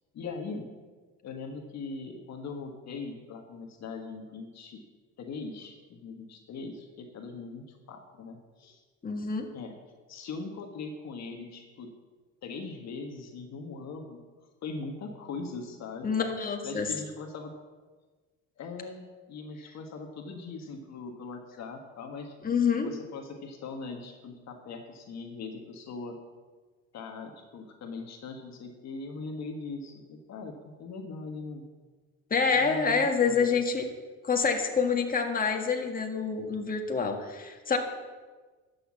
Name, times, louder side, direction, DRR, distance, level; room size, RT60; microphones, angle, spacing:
voice 1, 0.1-0.7 1.2-4.8 5.2-8.8 9.5-9.8 10.1-11.9 12.4-14.2 14.6-16.2 16.6-17.5 18.6-19.0 19.3-22.3 22.8-26.2 26.9-31.6 32.5-33.6, left 4 dB, 55° left, 3 dB, 1.5 m, -40 dB
voice 2, 9.0-9.5 16.0-16.9 22.4-22.9 32.3-33.8 34.2-37.8, left 5 dB, 25° left, 3 dB, 1.7 m, -27 dB
11.5 x 7.0 x 7.3 m, 1.3 s
cardioid pair, 95°, 32 cm